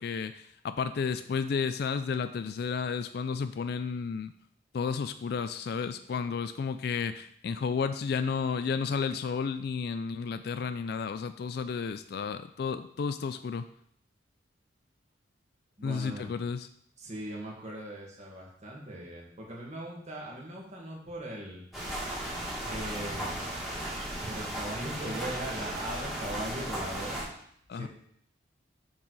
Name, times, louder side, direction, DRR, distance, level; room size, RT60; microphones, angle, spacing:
voice 1, 0.0-4.3 4.7-13.7 15.8-16.7 27.7-27.9, left 5 dB, 55° left, 11 dB, 0.3 m, -32 dB
voice 2, 15.8-16.3 17.0-21.6 22.7-23.5 24.2-27.2 27.7-27.9, right 1 dB, 40° right, -3 dB, 1.8 m, -39 dB
sound 1, 21.7-27.2, right 1 dB, ahead, 1.8 m, -36 dB
7.2 x 4.8 x 4.0 m, 0.67 s
head